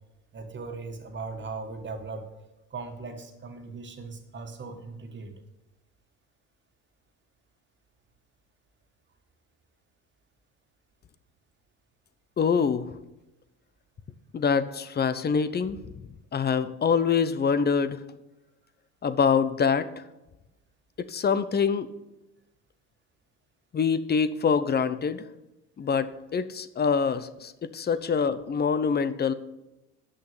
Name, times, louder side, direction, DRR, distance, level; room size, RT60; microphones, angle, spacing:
voice 1, 0.3-2.3 2.7-5.3, right 4 dB, 30° right, 5 dB, 1.9 m, -38 dB
voice 2, 12.4-12.9 14.3-15.8 16.3-18.0 19.0-19.9 21.1-21.9 23.7-25.2 25.8-29.3, left 6 dB, 30° left, 13 dB, 0.8 m, -25 dB
8.3 x 6.3 x 7.9 m, 0.97 s
supercardioid pair, 80°, 34 cm